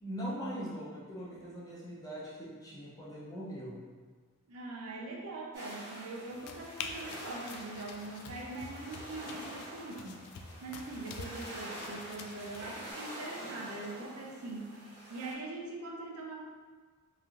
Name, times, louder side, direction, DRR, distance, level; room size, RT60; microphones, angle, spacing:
voice 1, 0.0-3.8, equal, 15° left, -7 dB, 0.6 m, -41 dB
voice 2, 4.5-16.4, right 2 dB, 75° right, -1 dB, 0.5 m, -42 dB
sound 1, 5.5-15.3, right 1 dB, 50° right, 0.9 m, -46 dB
sound 2, 6.3-12.9, left 5 dB, 85° left, 0.3 m, -47 dB
3.1 x 2.5 x 2.4 m, 1.5 s
head